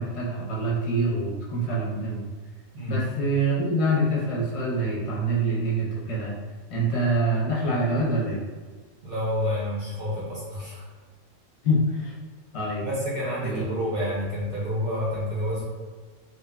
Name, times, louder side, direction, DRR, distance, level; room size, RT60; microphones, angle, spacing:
voice 1, 0.0-2.2 2.9-6.3 6.7-8.4 11.6-12.1 12.5-12.8 13.4-13.6, right 1 dB, 65° left, -6 dB, 0.9 m, -25 dB
voice 2, 9.0-10.9 12.8-15.6, equal, 55° right, -7 dB, 0.8 m, -29 dB
2.9 x 2.1 x 2.3 m, 1.4 s
omnidirectional pair, 1.3 m